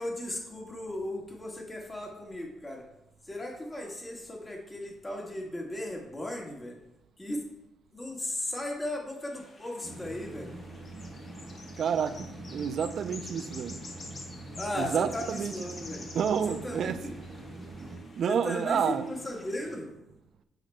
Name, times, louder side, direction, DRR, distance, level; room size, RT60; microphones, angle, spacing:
voice 1, 0.0-2.8 3.2-6.8 7.2-7.4 7.9-10.5 14.6-16.1 16.5-17.2 18.3-19.9, left 1 dB, 20° left, 1.6 m, -36 dB
sound 1, 9.2-19.8, left 3 dB, 40° left, 1.4 m, -49 dB
sound 2, 9.8-18.0, right 2 dB, 40° right, 1.1 m, -44 dB
voice 2, 11.8-13.8 14.7-15.6 16.1-17.3 17.6-19.1, right 7 dB, 60° right, 0.4 m, -30 dB
8.9 x 5.8 x 2.2 m
cardioid pair, 90°, 0 cm